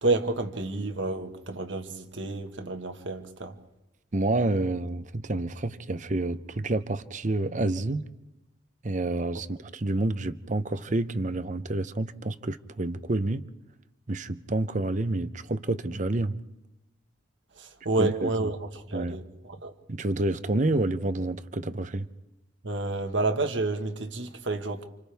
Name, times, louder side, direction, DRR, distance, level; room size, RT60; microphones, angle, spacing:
voice 1, 0.0-3.6 17.6-19.7 22.6-24.8, right 2 dB, 75° right, 1.6 m, -30 dB
voice 2, 4.1-8.0 8.8-13.5 14.1-16.4 18.0-18.5 18.9-19.2 19.9-22.1, right 2 dB, 40° right, 0.7 m, -28 dB
29.5 x 27.5 x 3.5 m
head